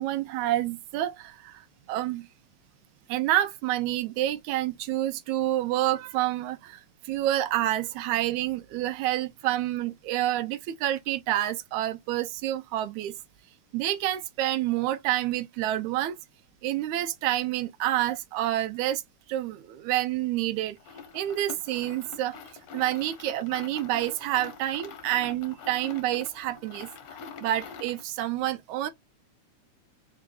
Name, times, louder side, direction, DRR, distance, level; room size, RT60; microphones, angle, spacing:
voice 1, 0.0-2.3 3.1-13.1 13.7-16.2 16.6-19.0 19.3-20.8 21.1-22.4 22.7-26.9 27.4-28.9, right 14 dB, 80° right, 2.0 m, -28 dB
sound 1, 20.8-28.1, left 6 dB, 60° left, 1.6 m, -45 dB
4.8 x 4.7 x 2.4 m
omnidirectional pair, 3.4 m